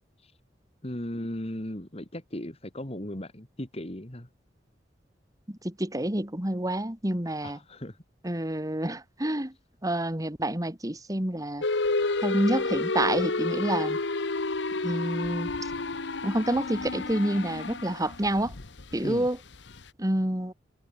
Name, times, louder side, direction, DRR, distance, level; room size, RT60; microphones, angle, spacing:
voice 1, 0.8-4.3 7.4-8.0 8.3-8.4 19.0-19.3, left 1 dB, 35° left, 3.0 m, -37 dB
voice 2, 5.5-7.6 8.2-9.5 9.8-11.6 12.2-14.0 14.8-15.5 16.2-18.5 18.9-19.4 20.0-20.5, right 1 dB, 20° right, 2.3 m, -28 dB
sound 1, 11.6-19.9, left 3 dB, 75° left, 1.3 m, -30 dB
head